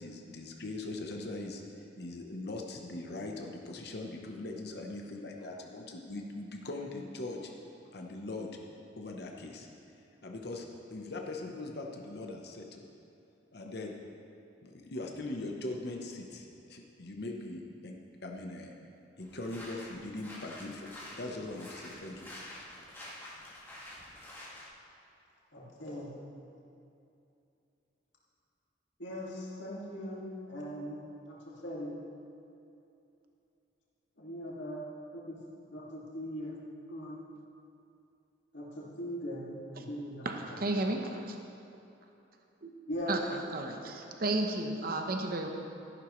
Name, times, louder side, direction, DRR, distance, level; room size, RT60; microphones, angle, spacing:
voice 1, 0.0-7.5 7.9-8.5 9.0-9.7 10.2-10.7 10.9-12.8 13.5-13.9 14.6-17.9 18.2-18.7 19.2-20.9 21.1-22.3, left 2 dB, 60° left, 1 dB, 1.0 m, -41 dB
sound 1, 19.2-24.7, left 1 dB, 10° left, 2.0 m, -48 dB
voice 2, 25.5-26.1 29.0-32.0 34.2-34.9 35.1-35.4 35.7-36.6 36.9-37.2 38.5-40.6 42.9-43.1, equal, 85° left, -5 dB, 2.3 m, -40 dB
voice 3, 40.2-41.4 42.6-42.7 43.1-43.2 43.5-45.5, right 2 dB, 50° right, 3 dB, 0.9 m, -33 dB
14.0 x 11.5 x 3.2 m, 2.8 s
head